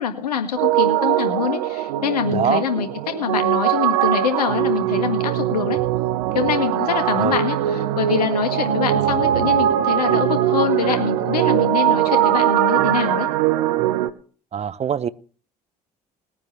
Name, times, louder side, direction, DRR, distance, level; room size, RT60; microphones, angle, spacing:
voice 1, 0.0-5.8 6.3-13.3, left 7 dB, 80° left, 8 dB, 1.7 m, -24 dB
sound 1, 0.6-14.1, right 12 dB, 70° right, 0.9 m, -21 dB
voice 2, 2.3-2.6 7.0-7.3 14.5-15.1, right 8 dB, 30° right, 18 dB, 0.8 m, -23 dB
20.0 x 9.6 x 3.3 m, 0.41 s
figure-of-eight pair, 55°, 20 cm